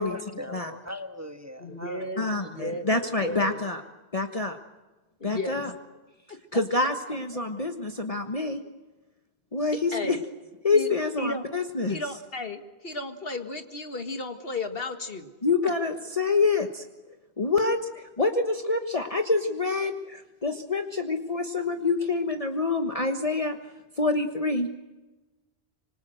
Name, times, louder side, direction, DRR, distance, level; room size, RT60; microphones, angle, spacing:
voice 1, 0.0-2.1, left 1 dB, 15° right, 6 dB, 1.5 m, -40 dB
voice 2, 1.6-2.9 3.2-3.5 5.2-5.6 6.3-6.4 7.6-7.7 9.9-10.2 10.7-10.9 11.2-11.4 11.9-15.3, left 2 dB, 60° left, 7 dB, 2.1 m, -34 dB
voice 3, 2.2-3.8 4.1-4.6 5.2-5.7 6.5-8.6 9.5-10.2 10.6-12.0 15.4-16.9 17.4-23.6 24.0-24.7, left 3 dB, 35° left, 5 dB, 1.4 m, -26 dB
26.0 x 25.0 x 7.8 m, 1.2 s
omnidirectional pair, 1.1 m